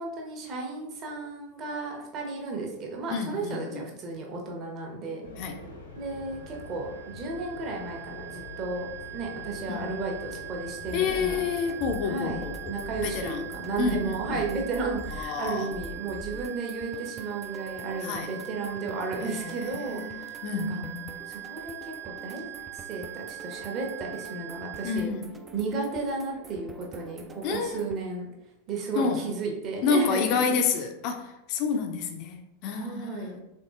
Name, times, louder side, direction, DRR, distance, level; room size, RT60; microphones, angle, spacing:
voice 1, 0.0-5.3 6.0-8.9 9.1-11.4 12.0-12.4 12.7-20.8 21.3-22.5 22.9-25.1 25.5-28.3 28.7-30.6 32.7-33.4, right 3 dB, 35° right, 0 dB, 0.9 m, -34 dB
voice 2, 3.1-3.8 5.4-5.6 9.7-9.9 10.9-12.7 13.0-13.5 13.8-14.4 15.1-15.7 18.0-18.3 19.2-21.2 24.8-25.3 27.4-27.8 28.9-29.3 29.8-33.4, left 5 dB, 40° left, 5 dB, 0.5 m, -29 dB
sound 1, 5.2-14.4, left 2 dB, 65° left, 0.8 m, -44 dB
sound 2, 5.9-25.0, right 16 dB, 80° right, 0.5 m, -42 dB
sound 3, 10.9-28.0, right 1 dB, 15° right, 0.4 m, -45 dB
3.6 x 3.6 x 2.4 m, 0.89 s
figure-of-eight pair, 90°, 0 cm